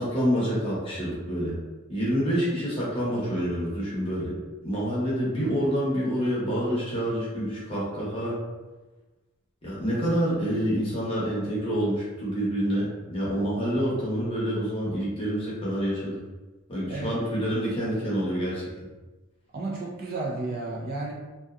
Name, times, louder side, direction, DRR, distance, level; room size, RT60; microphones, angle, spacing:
voice 1, 0.0-1.6 1.9-4.3 4.6-8.4 9.6-16.2 16.7-18.6, equal, 25° left, -7 dB, 0.9 m, -27 dB
voice 2, 16.9-17.5 19.5-21.1, right 2 dB, 45° right, -3 dB, 0.4 m, -33 dB
2.6 x 2.3 x 2.3 m, 1.2 s
head